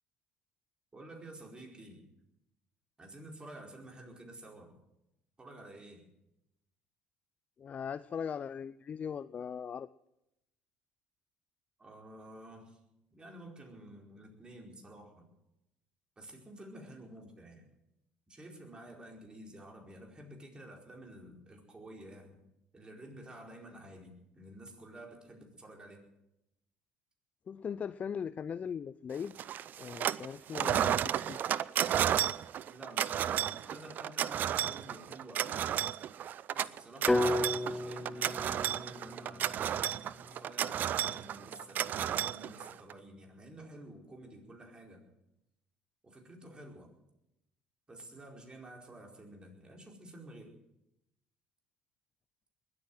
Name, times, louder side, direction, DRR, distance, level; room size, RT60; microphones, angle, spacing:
voice 1, 0.9-2.1 3.0-4.8 5.4-6.1 11.8-12.8 13.1-15.3 16.2-17.6 18.3-22.4 22.7-26.1 32.7-35.7 36.5-39.7 40.2-45.1 46.0-46.9 47.9-50.6, right 1 dB, 25° right, 1 dB, 4.7 m, -51 dB
voice 2, 7.6-9.9 27.5-29.3 29.8-31.4, left 7 dB, 40° left, 15 dB, 0.5 m, -39 dB
sound 1, 29.4-30.3 30.5-42.9, right 10 dB, 55° right, 0.5 m, -32 dB
sound 2, 37.1-41.1, left 2 dB, 10° left, 1.2 m, -34 dB
21.0 x 8.8 x 7.7 m, 0.87 s
hypercardioid pair, 70°, 4 cm